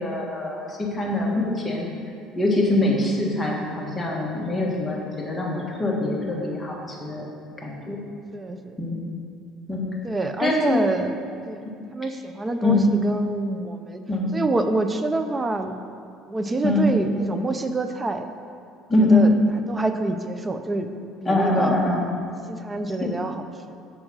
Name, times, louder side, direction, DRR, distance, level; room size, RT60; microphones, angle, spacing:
voice 1, 0.0-1.9 2.3-7.3 7.6-8.0 8.8-9.0 9.7-9.8 10.4-10.8 12.6-12.9 14.1-14.3 16.6-16.9 18.9-19.3 21.2-22.0 23.0-23.1, left 2 dB, 10° left, -3 dB, 1.3 m, -23 dB
voice 2, 2.5-2.8 4.3-4.7 8.3-8.7 10.0-11.1 11.5-11.6 11.9-14.0 14.3-15.7 16.3-18.3 19.0-19.3 19.7-20.9 21.2-22.2 22.5-23.4 23.7-23.8, right 2 dB, 15° right, 8 dB, 0.4 m, -27 dB
6.4 x 4.9 x 6.1 m, 2.5 s
cardioid pair, 140°, 0 cm